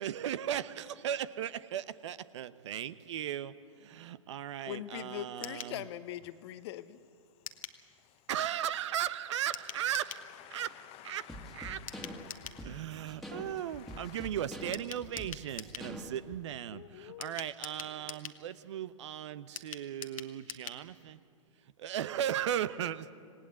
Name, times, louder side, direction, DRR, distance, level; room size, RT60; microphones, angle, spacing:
voice 1, 0.0-3.5 3.8-5.8 8.3-10.2 10.5-10.7 11.0-11.3 11.5-11.8 12.6-21.2 21.8-23.1, right 10 dB, 60° right, 0.9 m, -36 dB
voice 2, 4.7-7.0 16.7-17.4, left 12 dB, 50° left, 1.0 m, -42 dB
sound 1, 5.4-5.8 7.5-7.8 9.5-10.3 11.9-12.6 14.7-15.9 17.2-18.4 19.6-20.8 21.1-21.2 21.5-21.6, left 7 dB, 80° left, 1.4 m, -44 dB
voice 3, 10.1-12.8 13.3-14.3, left 13 dB, 35° left, 1.2 m, -53 dB
sound 2, 11.3-16.4, equal, ahead, 2.0 m, -45 dB
27.0 x 18.5 x 8.4 m
hypercardioid pair, 110°, 17 cm